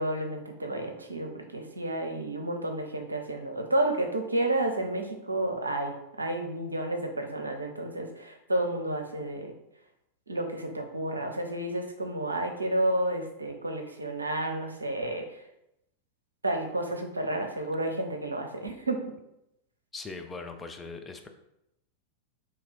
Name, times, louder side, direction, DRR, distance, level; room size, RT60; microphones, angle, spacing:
voice 1, 0.0-9.5 10.3-15.4 16.4-19.2, right 1 dB, 80° right, 4 dB, 0.6 m, -31 dB
voice 2, 19.9-21.3, left 4 dB, 15° left, 5 dB, 0.5 m, -40 dB
3.9 x 2.9 x 4.6 m, 0.84 s
figure-of-eight pair, 90°, 0 cm